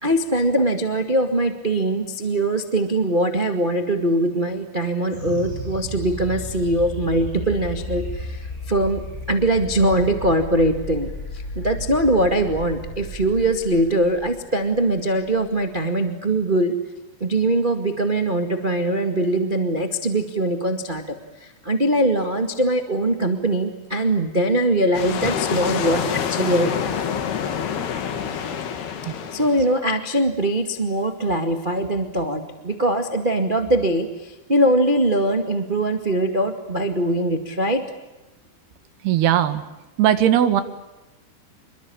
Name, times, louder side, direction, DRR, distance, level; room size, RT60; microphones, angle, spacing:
voice 1, 0.0-11.1 11.3-16.7 17.2-27.0 29.3-37.8, right 1 dB, 40° right, 6 dB, 0.7 m, -22 dB
sound 1, 5.1-15.8, left 1 dB, 15° left, 7.6 m, -34 dB
sound 2, 24.9-29.8, left 7 dB, 70° left, 4.2 m, -27 dB
voice 2, 39.0-39.6 40.0-40.6, right 11 dB, 70° right, 10 dB, 3.7 m, -18 dB
28.0 x 22.5 x 8.7 m, 1.0 s
omnidirectional pair, 4.9 m